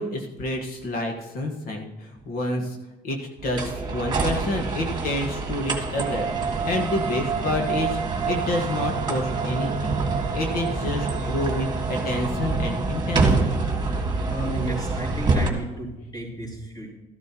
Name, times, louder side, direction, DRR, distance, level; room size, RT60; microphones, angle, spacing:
voice 1, 0.0-2.8 3.0-8.0 8.3-10.0 10.3-13.6, left 1 dB, 60° left, 2 dB, 1.6 m, -28 dB
sound 1, 3.4-15.5, right 3 dB, 25° right, 1.8 m, -27 dB
sound 2, 6.0-12.5, right 7 dB, 45° right, 0.6 m, -31 dB
voice 2, 14.3-16.9, right 1 dB, 25° left, -3 dB, 3.7 m, -33 dB
13.5 x 11.5 x 3.0 m, 1.1 s
cardioid pair, 110°, 17 cm